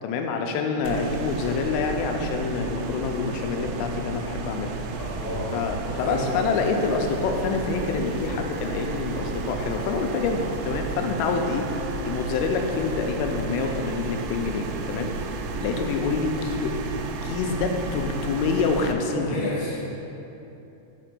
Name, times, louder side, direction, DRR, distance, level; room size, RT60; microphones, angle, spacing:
voice 1, 0.0-4.7 5.5-11.7 12.0-15.1 15.6-16.8 17.2-19.5, left 4 dB, 85° left, 3 dB, 3.0 m, -27 dB
sound 1, 0.9-18.9, right 3 dB, 90° right, 3.2 m, -32 dB
voice 2, 5.0-5.5 5.8-6.2 19.1-19.8, left 1 dB, 55° left, -9 dB, 2.3 m, -31 dB
6.6 x 4.9 x 6.0 m, 2.9 s
omnidirectional pair, 5.7 m